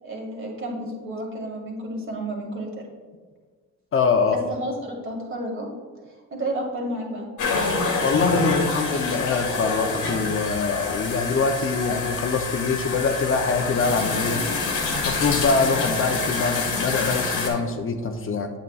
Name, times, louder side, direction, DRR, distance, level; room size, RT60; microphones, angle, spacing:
voice 1, 0.0-2.8 4.6-5.7 6.3-7.3, right 1 dB, 40° right, -1 dB, 2.0 m, -31 dB
voice 2, 3.9-4.4 8.0-14.4 15.0-18.5, left 4 dB, 45° left, 5 dB, 0.7 m, -24 dB
sound 1, 7.4-17.5, left 4 dB, 90° left, 1.5 m, -26 dB
8.4 x 7.5 x 2.4 m, 1.4 s
cardioid pair, 90°, 30 cm